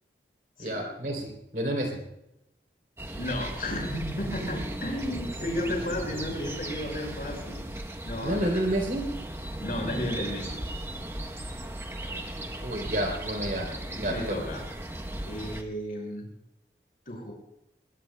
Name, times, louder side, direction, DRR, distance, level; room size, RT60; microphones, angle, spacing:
voice 1, 0.6-2.0 8.2-9.1 12.6-13.7 13.9-14.5, right 1 dB, 50° right, 0 dB, 3.4 m, -30 dB
sound 1, 3.0-15.6, right 1 dB, 15° right, 0.9 m, -37 dB
voice 2, 3.2-7.7 8.0-8.6 9.6-10.6 14.1-14.6 15.2-16.3 17.1-17.3, left 1 dB, 50° left, 0 dB, 5.6 m, -33 dB
21.0 x 21.0 x 2.3 m, 0.86 s
head